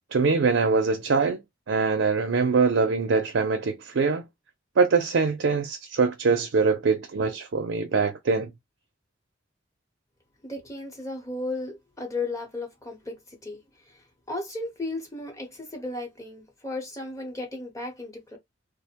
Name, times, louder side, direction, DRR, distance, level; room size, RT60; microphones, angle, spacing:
voice 1, 0.1-1.4 1.7-4.3 4.8-8.5, right 4 dB, 70° right, 0.5 m, -23 dB
voice 2, 10.4-14.0 14.3-18.4, left 2 dB, 15° left, 0.9 m, -35 dB
2.4 x 2.1 x 2.8 m
head